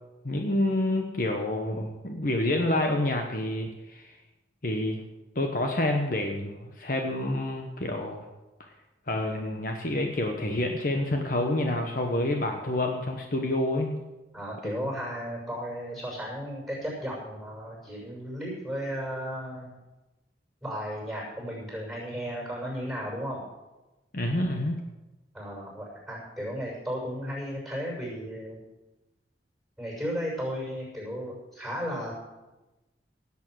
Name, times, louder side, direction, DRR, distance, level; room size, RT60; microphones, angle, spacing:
voice 1, 0.2-4.1 4.6-5.0 5.3-8.3 9.1-13.9 14.6-14.9 24.1-24.8, left 1 dB, 50° left, 3 dB, 1.2 m, -28 dB
voice 2, 14.3-19.8 20.6-23.4 25.3-28.6 29.8-32.1, equal, ahead, -3 dB, 6.5 m, -34 dB
17.5 x 8.5 x 6.5 m, 1.1 s
head